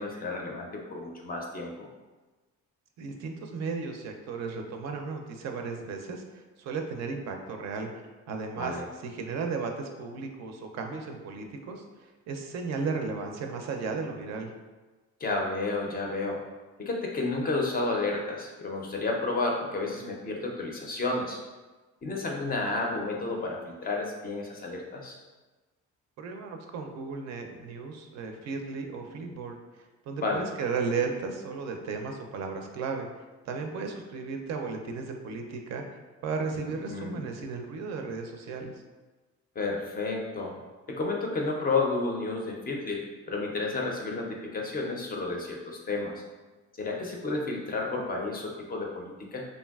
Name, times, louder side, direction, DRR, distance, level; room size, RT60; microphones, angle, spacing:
voice 1, 0.0-1.9 8.5-8.8 15.2-16.4 16.8-21.4 22.0-25.2 30.2-30.4 36.9-37.2 39.6-40.6 40.9-43.0 43.3-46.2 46.8-49.4, left 3 dB, 30° left, 0 dB, 0.4 m, -31 dB
voice 2, 3.0-7.9 8.3-11.8 12.3-14.5 26.2-29.6 30.1-33.1 33.5-35.8 36.2-38.7, right 4 dB, 65° right, 4 dB, 0.4 m, -34 dB
3.1 x 2.5 x 2.3 m, 1.2 s
cardioid pair, 135°, 30 cm